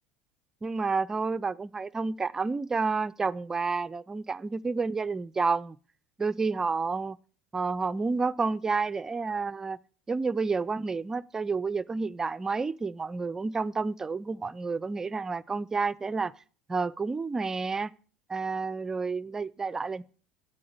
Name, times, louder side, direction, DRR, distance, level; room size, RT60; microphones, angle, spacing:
voice 1, 0.6-5.8 6.2-7.2 7.5-9.8 10.1-16.3 16.7-17.9 18.3-20.0, right 4 dB, 20° right, 0.4 m, -30 dB
10.0 x 8.5 x 6.5 m
hypercardioid pair, 80°, 3 cm